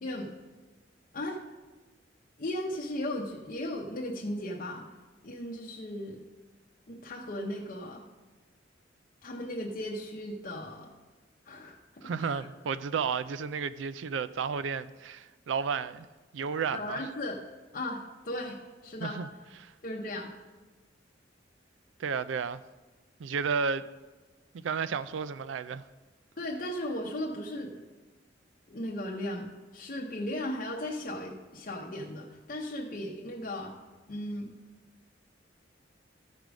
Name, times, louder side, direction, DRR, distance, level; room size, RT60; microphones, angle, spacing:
voice 1, 0.0-0.3 1.1-1.4 2.4-4.9 5.2-6.2 6.9-8.0 9.2-10.9 11.5-12.5 16.7-17.4 17.7-19.2 19.8-20.3 26.4-27.8 28.7-33.7 34.1-34.5, left 1 dB, 45° left, 0.8 m, -36 dB
voice 2, 12.0-16.1 16.3-17.1 19.0-19.3 19.6-19.7 22.0-22.6 23.2-23.9 24.5-25.8, right 6 dB, 85° right, 0.4 m, -32 dB
13.5 x 4.8 x 5.1 m
head